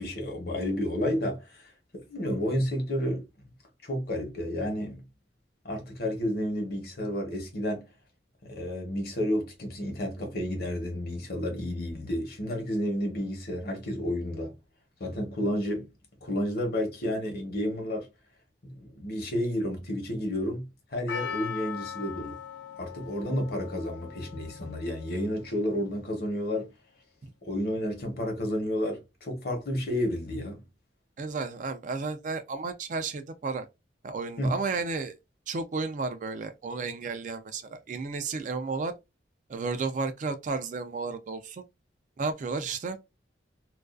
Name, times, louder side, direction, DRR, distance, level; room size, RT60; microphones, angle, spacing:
voice 1, 0.0-1.6 1.9-3.3 3.8-5.1 5.6-7.9 8.4-14.5 15.0-15.9 16.2-18.1 18.6-22.4 22.8-26.7 27.4-30.6 34.4-34.6, equal, 55° left, 0.9 m, -31 dB
Percussion, 21.1-25.4 25.7-25.8, left 8 dB, 75° left, 0.5 m, -40 dB
voice 2, 31.2-33.7 34.0-35.1 35.5-38.9 39.5-41.6 42.2-43.0, right 4 dB, 45° right, 0.3 m, -32 dB
2.4 x 2.3 x 2.3 m
head